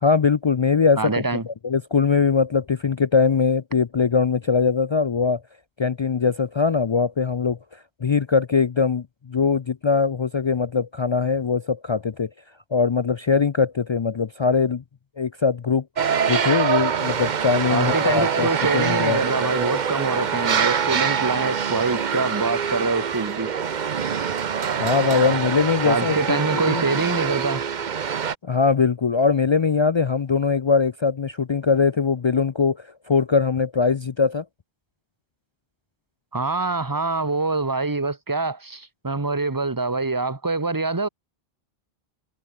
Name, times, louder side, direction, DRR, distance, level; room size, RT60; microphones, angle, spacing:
voice 1, 0.0-5.4 5.8-12.3 12.7-14.8 15.2-15.8 16.3-18.5 18.7-19.2 24.8-26.4 26.7-26.8 28.4-34.4, left 5 dB, 50° left, 0.3 m, -21 dB
voice 2, 1.0-1.4 17.7-23.5 25.8-27.6 36.3-41.1, right 3 dB, 20° right, 1.2 m, -25 dB
sound 1, 16.0-28.4, right 7 dB, 50° right, 0.9 m, -24 dB
omnidirectional pair, 1.0 m